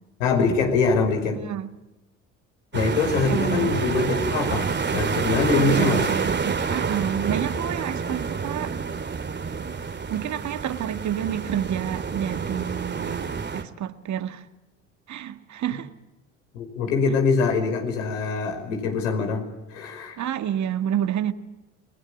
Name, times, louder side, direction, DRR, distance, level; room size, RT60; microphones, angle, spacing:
voice 1, 0.2-1.4 2.7-6.1 16.5-19.4 19.7-20.2, left 4 dB, 80° left, 5.4 m, -23 dB
voice 2, 1.3-1.7 3.2-3.7 5.5-8.7 10.1-14.5 15.1-15.9 20.2-21.3, right 10 dB, 50° right, 2.1 m, -29 dB
sound 1, 2.7-13.6, right 5 dB, 30° right, 2.4 m, -28 dB
28.5 x 22.0 x 9.0 m
hypercardioid pair, 60°, 38 cm